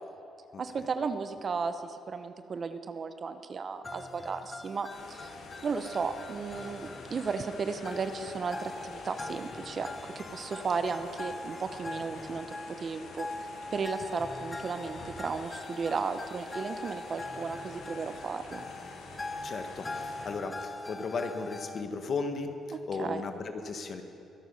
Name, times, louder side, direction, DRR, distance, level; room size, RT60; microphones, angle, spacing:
voice 1, 0.6-5.3 5.6-9.9 10.1-12.5 12.8-13.3 13.7-18.6 23.0-23.2, right 5 dB, 45° right, 9 dB, 0.8 m, -34 dB
sound 1, 3.8-21.8, left 2 dB, 25° left, 0.8 m, -42 dB
sound 2, 4.9-20.3, left 3 dB, 90° left, 2.1 m, -48 dB
voice 2, 19.4-24.0, left 4 dB, 50° left, 6 dB, 1.4 m, -35 dB
22.5 x 9.3 x 5.5 m, 2.7 s
cardioid pair, 90°, 0 cm